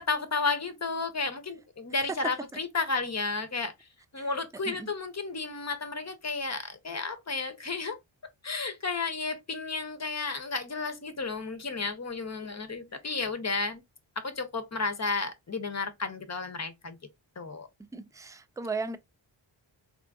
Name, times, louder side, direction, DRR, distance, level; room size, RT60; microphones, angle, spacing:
voice 1, 0.0-3.7 4.1-8.0 8.4-13.8 14.2-17.0 17.4-17.7, left 4 dB, 35° left, 0.8 m, -32 dB
voice 2, 4.2-4.9 17.9-19.0, right 4 dB, 10° right, 0.3 m, -36 dB
3.8 x 2.5 x 2.3 m
cardioid pair, 45°, 48 cm